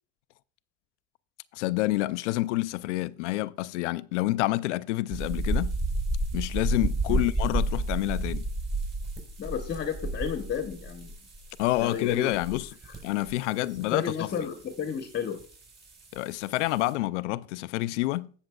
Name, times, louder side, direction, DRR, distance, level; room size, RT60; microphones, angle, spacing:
voice 1, 1.5-5.8 6.3-8.4 11.6-12.7 13.0-14.1 16.1-18.3, left 17 dB, 90° left, 0.5 m, -28 dB
sound 1, 5.1-16.9, right 2 dB, 30° right, 4.5 m, -32 dB
voice 2, 9.4-11.1 11.8-12.4 13.8-15.4, left 7 dB, 30° left, 1.0 m, -32 dB
19.0 x 6.3 x 2.3 m
supercardioid pair, 100°, 35 cm